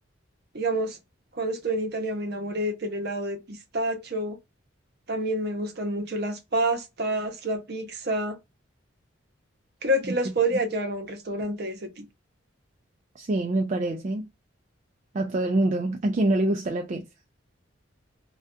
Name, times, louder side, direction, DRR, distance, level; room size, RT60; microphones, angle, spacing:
voice 1, 0.5-1.0 1.3-4.4 5.1-8.4 9.8-12.1, right 1 dB, 55° right, 0.7 m, -28 dB
voice 2, 13.2-14.3 15.1-17.1, right 2 dB, 40° right, 0.3 m, -25 dB
2.4 x 2.2 x 2.5 m
head